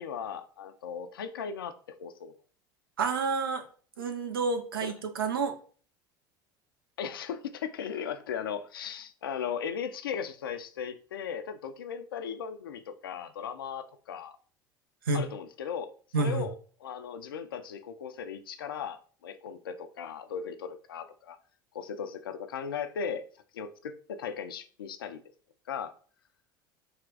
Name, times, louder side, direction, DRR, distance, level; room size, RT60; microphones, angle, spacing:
voice 1, 0.0-2.3 4.8-4.9 7.0-14.4 15.1-21.4 21.7-23.3 23.5-25.2 25.7-25.9, left 7 dB, 80° left, 0.4 m, -37 dB
voice 2, 3.0-3.6 4.0-5.5 15.1-15.2 16.1-16.5, right 4 dB, 85° right, 0.6 m, -29 dB
3.3 x 2.2 x 3.8 m
hypercardioid pair, 70°, 12 cm